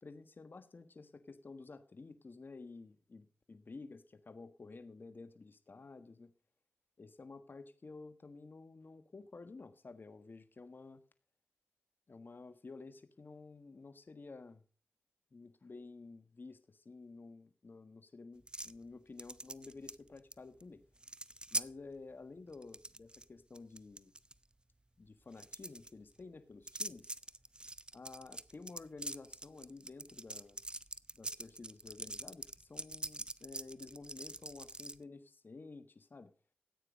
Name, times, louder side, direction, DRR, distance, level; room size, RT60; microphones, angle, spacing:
voice 1, 0.0-6.3 7.0-11.0 12.1-14.6 15.3-20.8 21.5-24.1 25.0-27.1 27.9-30.6 31.2-36.3, left 3 dB, 50° left, 10 dB, 1.5 m, -52 dB
sound 1, 18.5-18.8 19.2-20.3 20.6-20.7 21.0-21.7 22.5-23.2 23.6-24.3 25.3-25.9 26.7-35.0, right 2 dB, 20° right, 0.7 m, -43 dB
14.0 x 9.1 x 5.2 m, 0.39 s
cardioid pair, 50°, 4 cm